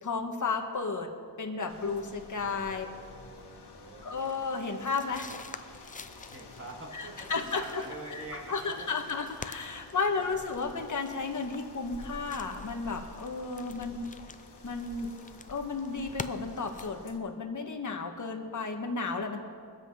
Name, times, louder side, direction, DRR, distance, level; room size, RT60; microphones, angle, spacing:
voice 1, 0.0-1.1 1.4-2.8 4.0-5.5 6.9-7.8 8.1-14.1 14.6-15.1 15.5-19.4, left 4 dB, 45° left, 3 dB, 1.4 m, -33 dB
sound 1, 1.7-17.2, left 3 dB, 70° left, 1.9 m, -50 dB
voice 2, 2.3-4.1 5.1-5.6 6.3-9.0 10.1-10.6 13.7-14.1, right 2 dB, 30° right, -1 dB, 2.3 m, -47 dB
sound 2, 4.2-16.9, left 4 dB, 20° left, 0.4 m, -48 dB
23.0 x 7.8 x 5.6 m, 2.1 s
wide cardioid pair, 170°, 41 cm